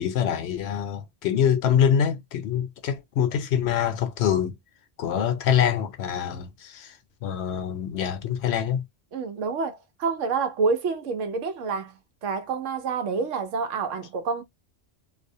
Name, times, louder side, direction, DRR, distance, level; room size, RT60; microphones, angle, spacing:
voice 1, 0.0-4.5 5.0-6.9 7.2-8.8, left 8 dB, 65° left, 0.8 m, -25 dB
voice 2, 9.1-14.4, right 5 dB, 85° right, 1.0 m, -28 dB
2.6 x 2.1 x 2.6 m
omnidirectional pair, 1.3 m